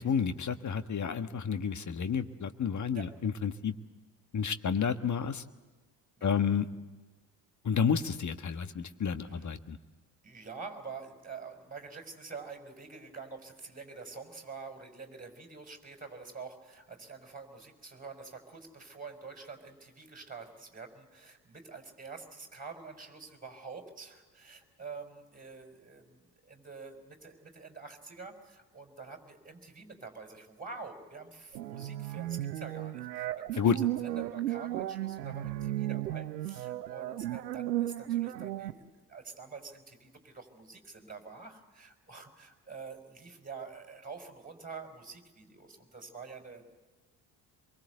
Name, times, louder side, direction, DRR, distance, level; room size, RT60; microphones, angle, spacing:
voice 1, 0.0-3.7 4.3-5.4 6.2-6.6 7.6-9.8 33.6-33.8, left 7 dB, 35° left, 10 dB, 1.6 m, -30 dB
voice 2, 6.2-6.5 9.2-9.5 10.2-46.6, right 4 dB, 15° right, 4 dB, 5.0 m, -47 dB
sound 1, 31.5-38.7, right 14 dB, 85° right, 0.8 m, -34 dB
24.0 x 23.5 x 8.1 m, 1.2 s
hypercardioid pair, 50°, 48 cm